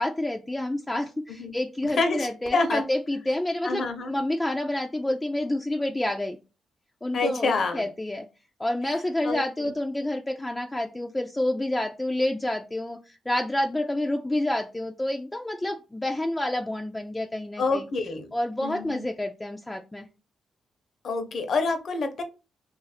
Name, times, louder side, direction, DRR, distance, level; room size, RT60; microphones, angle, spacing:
voice 1, 0.0-6.4 7.0-8.3 8.6-17.9 18.3-20.1, left 1 dB, 15° left, 3 dB, 0.4 m, -28 dB
voice 2, 1.8-2.8 3.6-4.1 7.1-7.9 9.2-9.7 17.6-18.3 18.6-19.0 21.0-22.2, left 3 dB, 60° left, 6 dB, 0.8 m, -27 dB
3.1 x 2.5 x 4.1 m, 0.30 s
cardioid pair, 80°, 0 cm